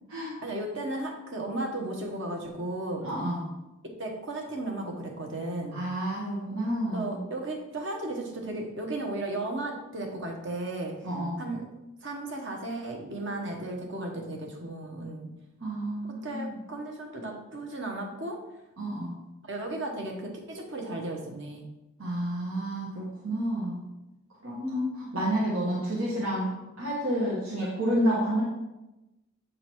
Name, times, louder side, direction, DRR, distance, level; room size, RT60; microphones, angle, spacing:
voice 1, 0.4-3.0 4.0-5.8 6.9-11.1 11.4-11.7 12.0-15.3 16.0-18.4 19.5-21.6, right 2 dB, 60° right, 1 dB, 1.2 m, -35 dB
voice 2, 3.0-3.4 5.7-7.2 11.0-11.4 15.6-16.6 18.8-19.1 22.0-23.8 24.4-28.4, equal, 85° right, -6 dB, 1.6 m, -30 dB
7.7 x 3.9 x 4.6 m, 0.99 s
head